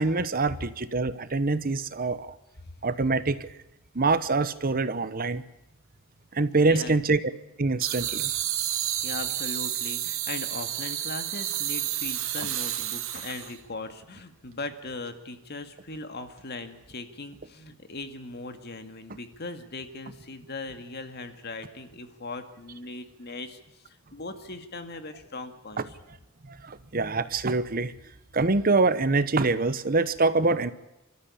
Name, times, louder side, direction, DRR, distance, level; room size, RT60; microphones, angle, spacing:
voice 1, 0.0-2.3 2.8-3.5 3.9-5.4 6.3-7.2 7.6-8.3 26.5-27.9 28.3-30.7, right 3 dB, 45° right, 14 dB, 1.0 m, -25 dB
voice 2, 6.6-7.0 9.0-25.9, left 2 dB, 50° left, 8 dB, 2.1 m, -39 dB
sound 1, 7.8-13.6, right 12 dB, 80° right, 2.1 m, -30 dB
27.5 x 13.5 x 8.6 m, 0.96 s
head